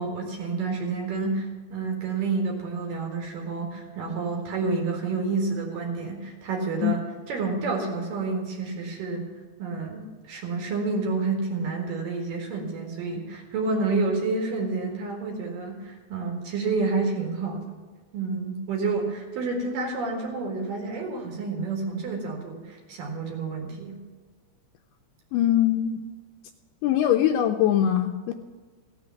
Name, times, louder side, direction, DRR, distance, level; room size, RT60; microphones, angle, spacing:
voice 1, 0.0-7.0 7.3-9.2 9.6-17.6 18.1-24.0, right 3 dB, 60° right, 1 dB, 3.2 m, -29 dB
voice 2, 25.3-26.0 26.8-28.3, left 11 dB, 80° left, 4 dB, 2.4 m, -22 dB
16.0 x 6.8 x 7.2 m, 1.4 s
omnidirectional pair, 4.8 m